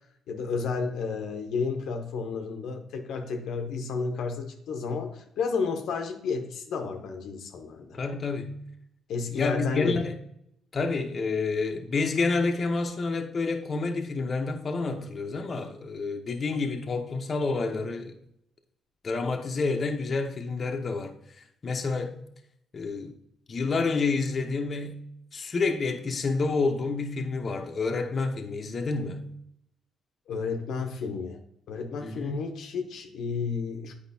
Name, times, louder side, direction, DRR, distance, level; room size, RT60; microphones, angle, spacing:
voice 1, 0.3-8.0 9.1-10.0 30.3-31.4 31.7-33.9, left 5 dB, 75° left, 0.8 m, -31 dB
voice 2, 7.9-8.6 9.3-10.1 10.7-18.1 19.0-21.1 21.6-22.2 22.7-23.2 23.5-25.0 25.3-29.3 32.0-32.4, left 3 dB, 40° left, 0.8 m, -29 dB
8.5 x 5.1 x 2.7 m
cardioid pair, 90°, 0 cm